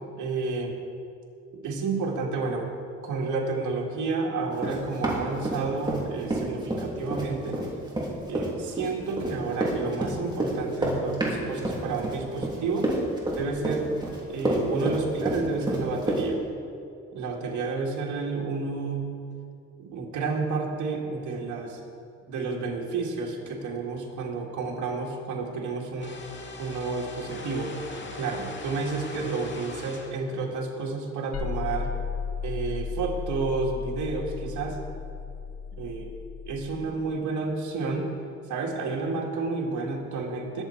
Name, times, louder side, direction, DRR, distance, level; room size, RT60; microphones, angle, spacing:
voice 1, 0.2-0.7 1.6-2.7 3.0-7.6 8.3-12.9 13.3-13.9 14.3-16.4 17.1-19.1 19.8-21.8 22.3-26.2 26.6-27.7 28.2-31.9 32.4-34.8 35.8-36.1 36.5-38.1 38.5-40.6, right 4 dB, 75° right, -1 dB, 2.0 m, -30 dB
Run, 4.6-6.0 6.3-16.2, right 1 dB, 15° right, 3.1 m, -28 dB
sound 1, 26.0-30.2, left 3 dB, 40° left, 1.9 m, -40 dB
sound 2, 31.3-36.9, left 6 dB, 55° left, 1.2 m, -34 dB
20.5 x 7.6 x 4.4 m, 2.5 s
cardioid pair, 90°, 30 cm